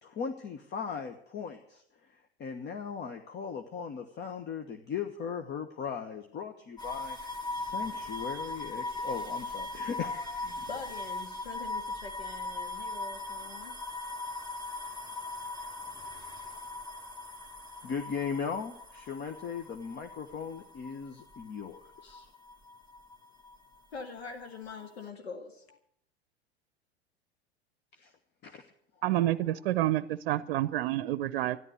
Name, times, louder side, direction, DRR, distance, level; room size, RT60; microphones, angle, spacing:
voice 1, 0.0-10.6 17.8-22.3 27.9-28.1 28.4-28.6, left 6 dB, 35° left, 6 dB, 1.3 m, -38 dB
sound 1, 6.8-23.7 24.0-25.0, left 2 dB, 15° left, 2.0 m, -39 dB
voice 2, 10.4-13.8 23.9-25.8, left 4 dB, 75° left, 4 dB, 1.9 m, -44 dB
voice 3, 29.0-31.6, right 14 dB, 60° right, 17 dB, 0.7 m, -28 dB
13.5 x 11.0 x 7.9 m, 0.68 s
figure-of-eight pair, 85°, 31 cm